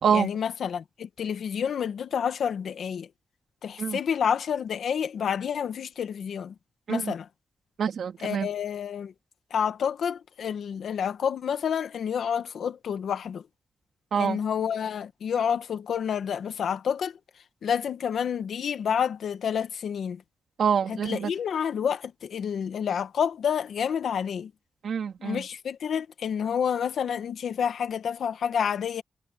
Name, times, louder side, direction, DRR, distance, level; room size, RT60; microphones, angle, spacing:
voice 1, 0.1-3.1 3.6-6.5 6.9-7.3 8.2-9.1 9.5-13.5 14.1-17.2 17.6-20.2 20.9-24.5 25.2-29.0, left 7 dB, 85° left, 1.6 m, -29 dB
voice 2, 7.8-8.5 14.1-14.4 20.6-21.3 24.8-25.4, right 7 dB, 75° right, 3.0 m, -26 dB
wide cardioid pair, 145°, 0 cm